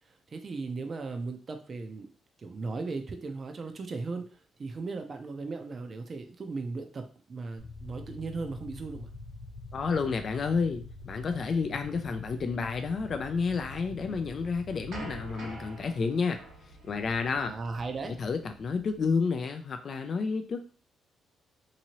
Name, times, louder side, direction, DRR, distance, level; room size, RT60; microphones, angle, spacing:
voice 1, 0.3-2.1 2.4-4.2 4.6-9.1 14.1-14.2 17.3-18.1, right 3 dB, 40° right, 6 dB, 0.5 m, -37 dB
sound 1, 7.6-15.3, left 2 dB, 85° left, 0.8 m, -45 dB
voice 2, 9.7-16.4 16.8-17.5 18.1-20.6, left 5 dB, 50° left, 6 dB, 0.4 m, -30 dB
sound 2, 14.2-19.1, right 2 dB, 75° right, 1.4 m, -47 dB
2.9 x 2.7 x 2.9 m, 0.40 s
cardioid pair, 90°, 0 cm